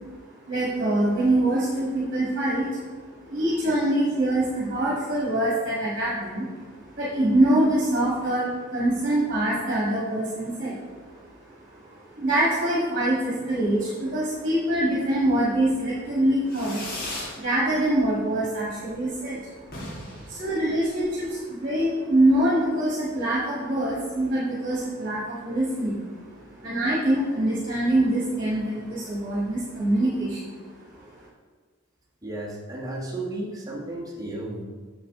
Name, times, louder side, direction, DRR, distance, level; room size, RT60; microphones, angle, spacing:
voice 1, 0.5-2.9 3.2-6.7 7.0-11.2 11.8-16.8 17.1-19.5 20.1-26.1 26.4-30.6, right 1 dB, 40° right, -7 dB, 1.6 m, -24 dB
Fireworks, 16.5-17.4 17.7-18.3 18.6-18.7 18.9-19.0 19.3-19.4 19.6-21.3, left 1 dB, 45° left, 1.4 m, -37 dB
voice 2, 32.2-34.6, right 2 dB, 15° right, -4 dB, 1.3 m, -33 dB
7.3 x 7.0 x 3.6 m, 1.5 s
head